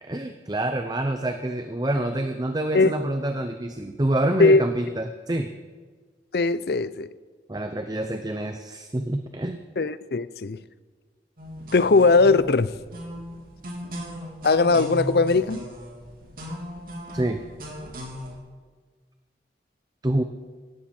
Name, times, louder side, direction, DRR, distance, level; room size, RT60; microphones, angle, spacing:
voice 1, 0.0-5.5 7.5-9.6 17.1-17.4 20.0-20.2, right 1 dB, 20° right, 0.7 m, -27 dB
voice 2, 6.3-7.1 9.8-10.6 11.7-12.7 14.4-15.6, left 3 dB, 60° left, 0.6 m, -19 dB
sound 1, 11.4-18.4, equal, 55° right, 3.5 m, -37 dB
17.5 x 14.0 x 4.4 m
head